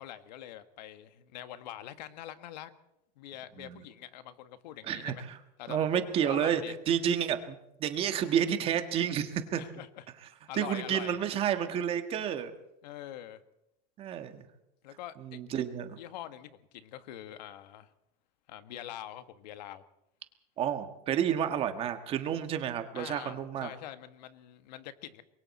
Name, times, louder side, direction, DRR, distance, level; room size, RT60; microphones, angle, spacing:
voice 1, 0.0-2.7 3.2-5.2 5.6-6.7 9.6-10.0 10.5-11.2 12.8-13.4 14.8-15.6 16.0-17.9 18.5-19.8 22.9-25.2, left 12 dB, 90° left, 11 dB, 1.7 m, -44 dB
voice 2, 4.8-5.4 5.7-9.6 10.5-12.5 14.0-14.4 15.2-16.0 20.6-23.7, right 9 dB, 25° right, 8 dB, 1.5 m, -30 dB
27.0 x 22.5 x 4.3 m, 0.83 s
supercardioid pair, 175°, 21 cm